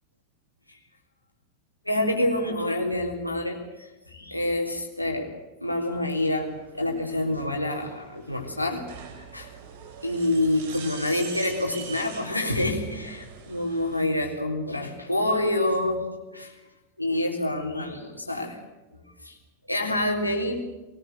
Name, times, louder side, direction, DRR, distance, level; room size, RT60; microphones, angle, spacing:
voice 1, 1.9-5.3 5.6-8.8 9.3-9.5 10.0-13.2 13.5-16.0 16.3-16.5 17.0-18.6 19.2-19.4 19.7-20.5, left 1 dB, 85° left, 0 dB, 3.7 m, -27 dB
sound 1, 6.4-14.0, right 7 dB, 55° right, 4.9 m, -44 dB
24.0 x 19.5 x 8.0 m, 1.1 s
figure-of-eight pair, 90°, 0 cm